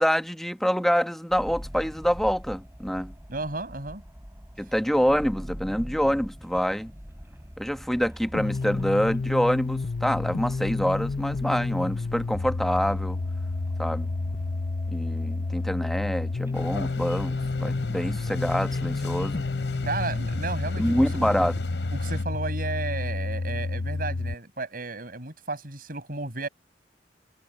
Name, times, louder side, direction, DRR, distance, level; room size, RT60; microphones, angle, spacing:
voice 1, 0.0-3.1 4.6-6.9 7.6-13.2 13.8-14.1 14.9-19.4 20.8-21.5, equal, ahead, 1.1 m, -26 dB
sound 1, 1.3-17.5, equal, 15° right, 7.1 m, -43 dB
voice 2, 3.3-4.0 19.8-21.3 21.9-26.5, right 3 dB, 55° right, 6.8 m, -33 dB
sound 2, 8.3-24.3, left 3 dB, 50° left, 0.6 m, -30 dB
sound 3, 16.5-22.2, left 1 dB, 80° left, 6.7 m, -36 dB
head